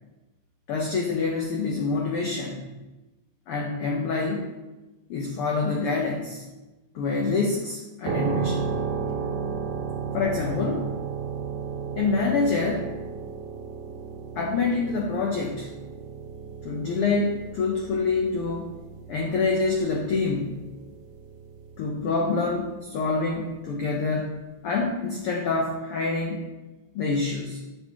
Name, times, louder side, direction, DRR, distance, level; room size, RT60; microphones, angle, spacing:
voice 1, 0.7-2.7 3.5-4.4 5.1-6.4 6.9-8.6 10.1-10.9 12.0-12.9 14.3-15.7 16.6-18.7 19.1-20.6 21.8-26.5 26.9-27.6, left 4 dB, 75° left, 0 dB, 1.3 m, -26 dB
sound 1, 8.1-22.7, right 6 dB, 80° right, 2.3 m, -34 dB
8.2 x 6.6 x 3.6 m, 1.1 s
omnidirectional pair, 3.6 m